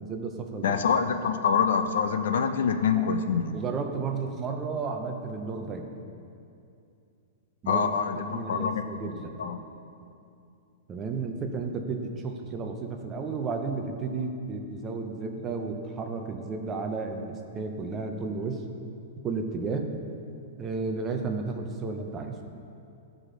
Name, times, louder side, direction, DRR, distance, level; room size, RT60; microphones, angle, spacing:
voice 1, 0.0-0.8 3.0-3.2 3.5-5.9 7.6-7.9 8.1-9.3 10.9-18.6 19.2-19.9 20.6-22.4, right 4 dB, 15° right, 4 dB, 0.5 m, -33 dB
voice 2, 0.6-3.6 7.7-9.6, left 6 dB, 75° left, 8 dB, 0.5 m, -26 dB
13.0 x 4.9 x 3.8 m, 2.6 s
supercardioid pair, 180°, 0 cm